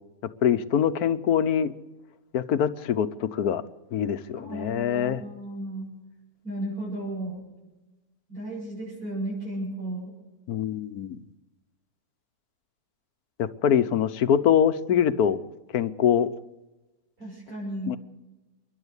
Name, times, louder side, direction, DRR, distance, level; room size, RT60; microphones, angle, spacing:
voice 1, 0.2-1.7 2.3-3.6 3.9-5.2 10.5-11.2 13.4-15.4 15.7-16.3 17.9-18.0, left 8 dB, 90° left, 13 dB, 1.4 m, -24 dB
voice 2, 4.3-6.0 6.4-7.4 8.3-10.2 17.2-18.0, right 1 dB, 80° right, -6 dB, 8.4 m, -34 dB
28.5 x 11.5 x 8.2 m, 1.1 s
omnidirectional pair, 1.5 m